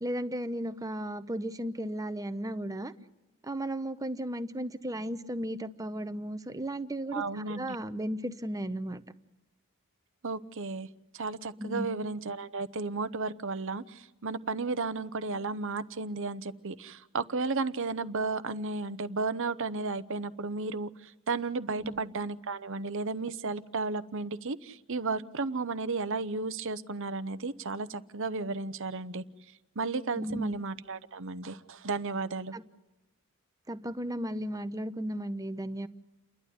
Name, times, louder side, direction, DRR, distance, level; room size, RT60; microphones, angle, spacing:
voice 1, 0.0-2.9 3.4-9.0 11.6-11.9 21.8-22.0 30.1-30.6 32.5-32.6 33.7-35.9, right 1 dB, 15° right, 11 dB, 0.9 m, -35 dB
voice 2, 7.1-7.8 10.2-10.9 11.1-20.9 21.3-29.2 29.8-32.5, right 3 dB, 60° right, 14 dB, 0.9 m, -33 dB
29.5 x 12.0 x 9.9 m, 1.0 s
head